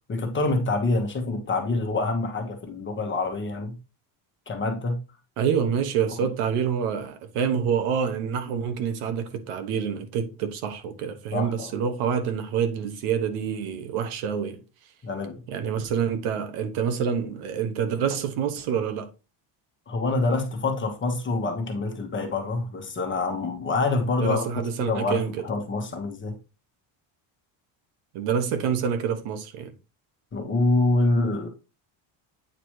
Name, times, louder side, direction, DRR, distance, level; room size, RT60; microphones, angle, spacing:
voice 1, 0.1-3.8 4.5-5.0 11.3-11.7 15.0-15.4 19.9-26.4 30.3-31.5, left 2 dB, 25° left, 1.3 m, -26 dB
voice 2, 5.4-14.6 15.5-19.1 24.2-25.4 28.1-29.7, right 7 dB, 80° right, 1.3 m, -27 dB
8.8 x 3.0 x 4.7 m
cardioid pair, 140°, 49 cm